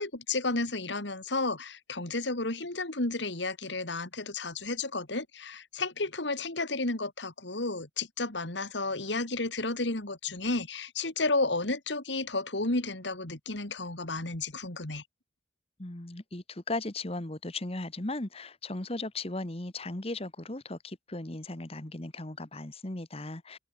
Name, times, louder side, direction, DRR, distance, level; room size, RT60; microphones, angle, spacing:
voice 1, 0.0-15.0, left 2 dB, 70° left, 3.1 m, -32 dB
voice 2, 15.8-23.6, left 2 dB, 30° left, 1.5 m, -37 dB
head